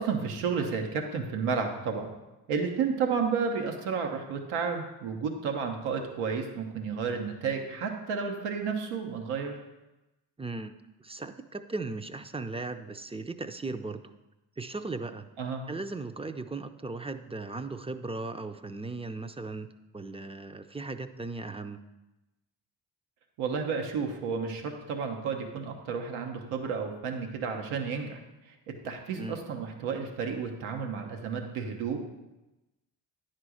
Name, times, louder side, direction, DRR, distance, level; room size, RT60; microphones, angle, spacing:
voice 1, 0.0-2.1 2.5-9.5 15.4-15.6 23.4-28.2 28.5-28.6 28.8-32.1, right 5 dB, 90° right, 3 dB, 1.1 m, -31 dB
voice 2, 10.4-10.7 11.0-14.0 14.6-15.3 15.7-19.7 19.9-21.8 29.2-29.4, right 3 dB, 10° right, 9 dB, 0.5 m, -37 dB
9.9 x 4.4 x 6.3 m, 1.0 s
supercardioid pair, 50°, 48 cm